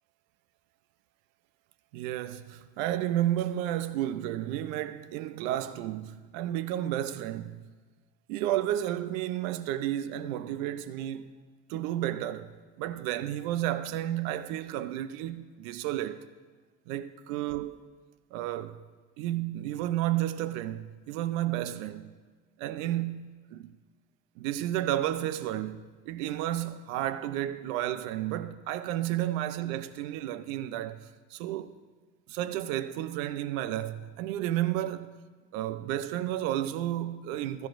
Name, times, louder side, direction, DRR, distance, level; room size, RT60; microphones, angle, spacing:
voice 1, 1.9-7.6 8.3-11.3 11.7-12.5 12.8-16.3 16.9-17.9 18.3-18.8 19.2-22.1 22.6-23.7 24.4-31.8 32.3-35.2 35.5-37.7, right 13 dB, 75° right, 0.7 m, -32 dB
15.0 x 13.5 x 2.5 m
hypercardioid pair, 75°, 40 cm